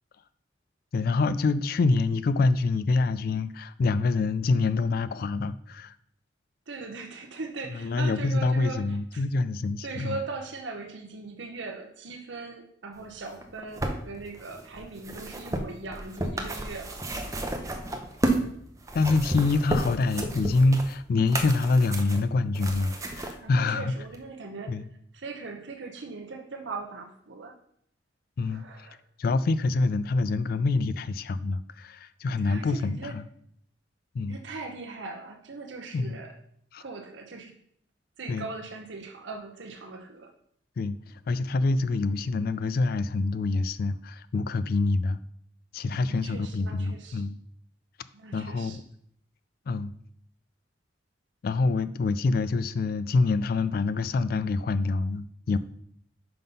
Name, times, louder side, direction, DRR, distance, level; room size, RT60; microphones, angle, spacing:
voice 1, 0.9-5.9 7.7-10.2 18.9-23.9 24.7-24.9 28.4-28.9 29.2-33.3 34.1-34.4 35.9-36.2 36.7-36.8 38.3-38.5 40.8-41.0 41.3-45.2 45.7-47.4 48.3-48.8 49.7-49.9 51.4-55.6, left 3 dB, 50° left, 14 dB, 0.3 m, -26 dB
voice 2, 6.7-9.2 9.8-17.0 23.4-24.9 25.1-27.6 28.4-29.0 32.4-33.2 34.3-36.4 36.8-37.5 38.2-40.3 45.9-47.2 48.1-48.8, right 3 dB, 75° right, 3 dB, 0.8 m, -40 dB
sound 1, 13.3-18.5 18.8-23.3 24.1-24.2, right 1 dB, 15° right, 0.7 m, -32 dB
5.7 x 5.5 x 5.3 m, 0.69 s
head